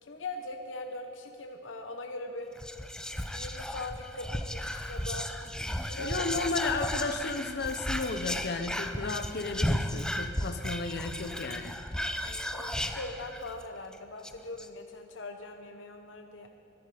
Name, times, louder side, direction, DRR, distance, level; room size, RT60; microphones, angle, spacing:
voice 1, 0.0-2.5 3.1-5.3 5.9-6.2 12.2-16.5, left 2 dB, 85° left, 4 dB, 1.0 m, -41 dB
Whispering, 2.6-13.6 13.9-14.0 14.2-14.7, left 1 dB, 5° left, 0.6 m, -34 dB
voice 2, 6.0-11.8, left 3 dB, 60° left, 7 dB, 0.8 m, -33 dB
23.0 x 11.0 x 5.0 m, 2.4 s
head